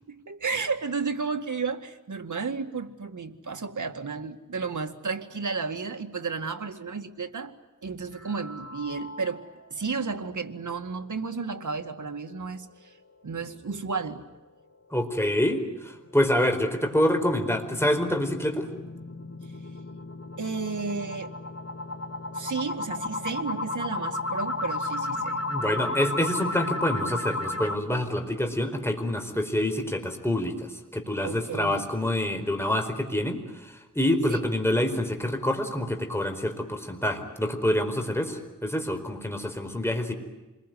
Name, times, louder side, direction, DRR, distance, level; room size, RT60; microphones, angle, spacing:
voice 1, 0.1-7.5 7.8-9.4 9.7-12.9 13.2-14.2 20.4-21.3 22.3-25.4 31.2-31.9 34.3-34.5, right 4 dB, 70° right, 5 dB, 2.1 m, -32 dB
sound 1, 8.1-9.6 10.0-10.1 10.5-10.6 11.0-11.1 15.9-27.8, left 2 dB, 50° left, 1.9 m, -34 dB
voice 2, 14.9-18.7 25.5-40.1, left 1 dB, 10° left, 5 dB, 4.6 m, -27 dB
27.5 x 21.5 x 9.3 m, 1.1 s
wide cardioid pair, 60°, 32 cm